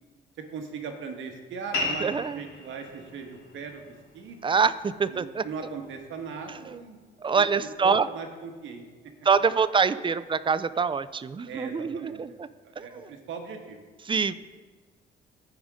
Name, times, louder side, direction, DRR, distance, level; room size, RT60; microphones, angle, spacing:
voice 1, 0.4-2.1 2.3-4.4 5.1-7.0 7.3-7.5 7.8-8.8 11.5-13.8, right 5 dB, 75° right, 4 dB, 1.4 m, -39 dB
sound 1, 1.7-6.8, left 2 dB, 75° left, 3.0 m, -37 dB
voice 2, 2.0-2.4 4.4-5.5 6.7-6.8 7.2-8.1 9.2-12.5 12.8-13.1 14.1-14.3, right 5 dB, 25° right, 15 dB, 0.4 m, -25 dB
15.0 x 5.1 x 3.6 m, 1.3 s
cardioid pair, 90°, 20 cm